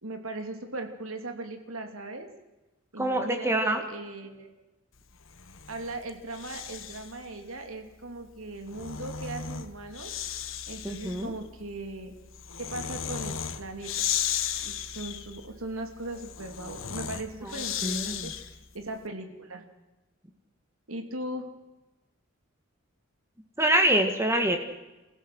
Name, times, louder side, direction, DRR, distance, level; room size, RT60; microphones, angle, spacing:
voice 1, 0.0-2.3 2.9-4.5 5.7-10.1 10.7-12.1 12.6-14.1 14.6-19.6 20.9-21.4, right 2 dB, 85° right, 5 dB, 3.0 m, -39 dB
voice 2, 3.0-3.8 10.8-11.3 17.8-18.3 23.6-24.6, right 1 dB, 15° right, 5 dB, 1.8 m, -25 dB
Breathing, 5.2-7.2 8.4-18.7, left 9 dB, 70° left, 1.3 m, -35 dB
28.0 x 15.5 x 6.3 m, 1.1 s
head